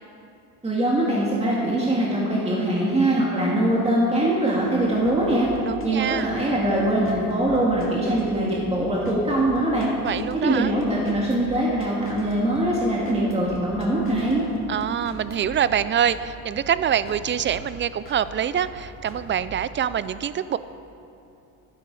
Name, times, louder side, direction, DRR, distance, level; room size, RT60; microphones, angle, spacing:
voice 1, 0.6-5.5 5.8-9.9 10.3-14.4, right 1 dB, 15° right, -5 dB, 2.2 m, -22 dB
sound 1, 4.6-20.0, right 1 dB, 35° left, 2.3 m, -42 dB
voice 2, 5.6-6.3 10.0-10.7 14.7-20.6, right 9 dB, 30° right, 15 dB, 0.4 m, -25 dB
12.0 x 10.5 x 4.9 m, 2.8 s
cardioid pair, 95°, 38 cm